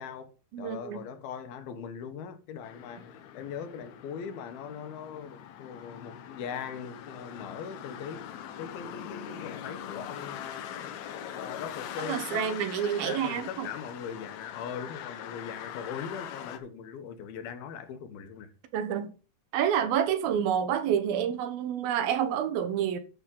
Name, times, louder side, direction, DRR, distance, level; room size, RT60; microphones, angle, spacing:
voice 1, 0.0-8.3 8.6-10.9 11.3-12.6 12.9-18.5, left 7 dB, 90° left, 3.0 m, -40 dB
voice 2, 0.5-1.0 12.1-13.7 18.7-19.1 19.5-23.0, right 9 dB, 85° right, 2.9 m, -28 dB
sound 1, 2.6-16.6, left 10 dB, 70° left, 1.9 m, -42 dB
11.0 x 6.8 x 3.8 m
omnidirectional pair, 4.2 m